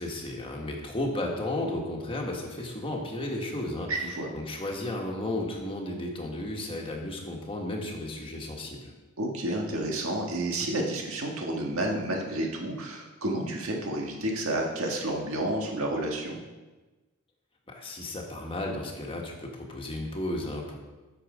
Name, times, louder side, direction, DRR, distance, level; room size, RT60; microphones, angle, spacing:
voice 1, 0.0-3.9 4.3-8.9 17.7-20.8, left 1 dB, 25° left, 0 dB, 1.5 m, -33 dB
voice 2, 3.9-4.3 9.2-16.4, right 1 dB, 80° right, 0 dB, 1.7 m, -30 dB
8.7 x 6.8 x 5.0 m, 1.2 s
head